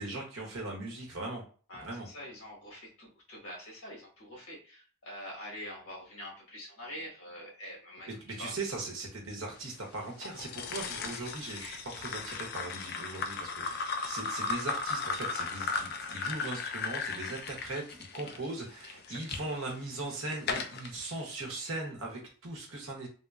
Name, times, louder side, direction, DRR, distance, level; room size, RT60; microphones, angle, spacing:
voice 1, 0.0-1.4 1.7-2.1 8.1-17.8 18.1-23.1, right 2 dB, 70° right, 0 dB, 1.1 m, -39 dB
voice 2, 1.7-8.1 8.4-8.5 18.2-18.4 19.0-19.5, equal, 85° left, -2 dB, 1.5 m, -45 dB
sound 1, 10.2-19.4 20.0-20.9, left 4 dB, 45° left, 0.4 m, -36 dB
3.6 x 2.9 x 2.4 m, 0.39 s
head